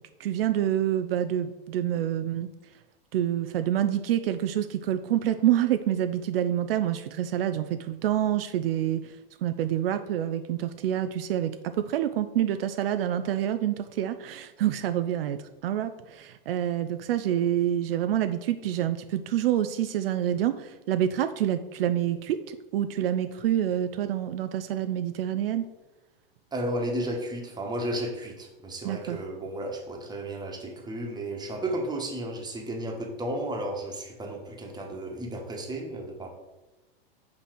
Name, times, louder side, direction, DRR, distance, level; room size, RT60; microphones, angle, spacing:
voice 1, 0.2-2.5 3.1-25.7 28.8-29.2, right 11 dB, 75° right, 9 dB, 0.5 m, -27 dB
voice 2, 26.5-36.3, right 1 dB, 15° right, 1 dB, 1.4 m, -33 dB
5.7 x 4.0 x 6.0 m, 1.1 s
hypercardioid pair, 110°, 29 cm